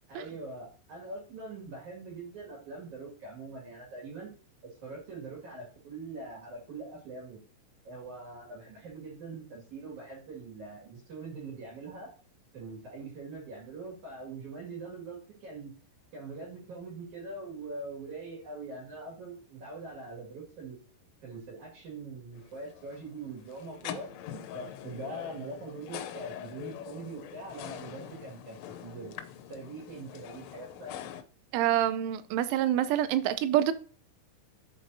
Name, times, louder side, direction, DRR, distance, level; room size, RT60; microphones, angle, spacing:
voice 1, 0.1-4.3 4.6-7.4 7.8-12.1 12.5-15.7 16.1-20.8 21.2-29.2 29.5-31.1, right 3 dB, 50° right, -2 dB, 2.7 m, -43 dB
sound 1, 22.3-31.2, left 11 dB, 85° left, 3.2 m, -44 dB
voice 2, 31.5-33.7, right 12 dB, 85° right, 13 dB, 2.9 m, -26 dB
14.0 x 5.1 x 2.7 m, 0.41 s
omnidirectional pair, 5.7 m